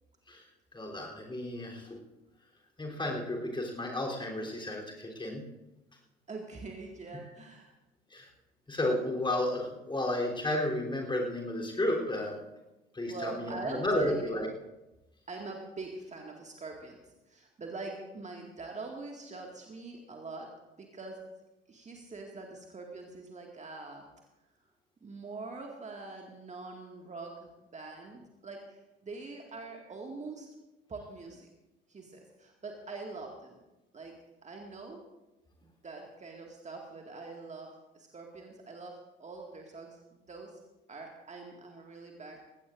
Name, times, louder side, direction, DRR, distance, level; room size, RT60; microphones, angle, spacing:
voice 1, 0.7-2.0 2.8-5.4 8.1-8.3 8.7-12.3 12.9-14.5, left 1 dB, 15° left, -1 dB, 3.6 m, -32 dB
voice 2, 6.3-7.7 13.1-14.5 15.3-20.5 20.8-21.2 21.7-24.0 25.0-30.5 30.9-31.5 31.9-33.6 33.9-34.1 34.4-35.0 35.6-40.5 40.9-42.4, right 3 dB, 25° right, 1 dB, 2.0 m, -43 dB
20.0 x 17.0 x 2.6 m, 1.0 s
figure-of-eight pair, 60°, 30 cm